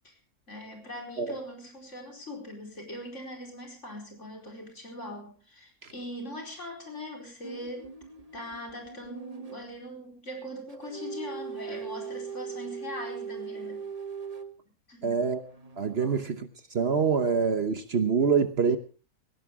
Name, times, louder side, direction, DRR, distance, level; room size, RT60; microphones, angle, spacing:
voice 1, 0.5-7.9 8.3-13.8 14.9-15.2 16.0-16.2, left 1 dB, 55° left, 2 dB, 5.0 m, -41 dB
sound 1, 7.4-9.6 10.7-14.5 15.2-16.2, right 6 dB, 30° right, 1.2 m, -40 dB
voice 2, 15.0-15.4 15.8-16.4 16.7-18.8, right 5 dB, 50° right, 10 dB, 1.2 m, -25 dB
18.5 x 17.0 x 3.6 m, 0.33 s
omnidirectional pair, 1.5 m